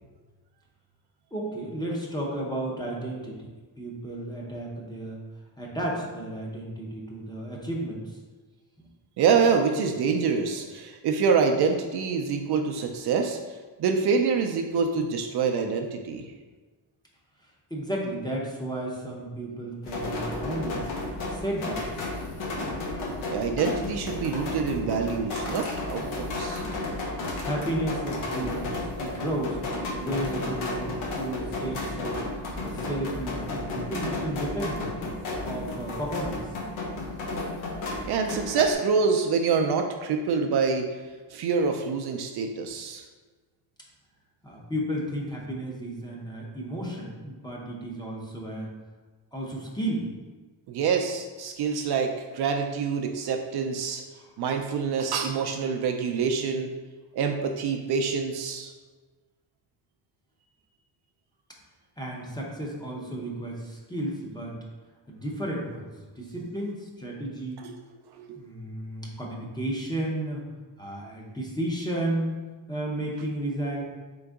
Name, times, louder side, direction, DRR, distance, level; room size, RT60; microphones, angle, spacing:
voice 1, 1.3-3.5 3.8-5.2 5.6-8.2 8.8-8.9 17.7-20.8 21.3-21.8 27.4-34.9 35.4-36.4 44.4-48.7 49.3-50.1 54.1-54.3 62.0-64.6 65.1-67.7 68.3-70.4 70.8-72.4 72.7-73.8, right 1 dB, 10° left, -3 dB, 0.6 m, -33 dB
voice 2, 9.2-13.4 13.8-16.2 23.3-26.7 38.0-41.0 41.3-43.0 50.7-54.0 54.4-56.7 57.1-58.7 67.6-67.7 68.1-68.4, right 5 dB, 55° right, 4 dB, 0.5 m, -26 dB
sound 1, 19.8-38.7, left 2 dB, 80° left, 1.2 m, -33 dB
3.8 x 3.5 x 3.5 m, 1.3 s
cardioid pair, 140°, 47 cm